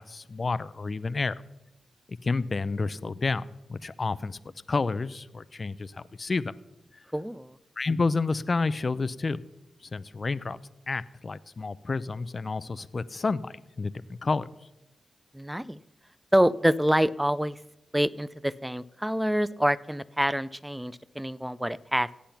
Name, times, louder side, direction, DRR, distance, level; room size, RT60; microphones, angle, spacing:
voice 1, 0.0-1.4 2.1-4.4 4.7-6.6 7.8-9.4 9.8-10.6 10.9-13.9 14.2-14.5, left 3 dB, 45° left, 17 dB, 0.6 m, -30 dB
voice 2, 7.1-7.6 15.3-15.8 16.3-17.6 17.9-22.1, equal, 5° right, 19 dB, 0.5 m, -26 dB
16.0 x 8.6 x 5.9 m, 0.96 s
cardioid pair, 50°, 0 cm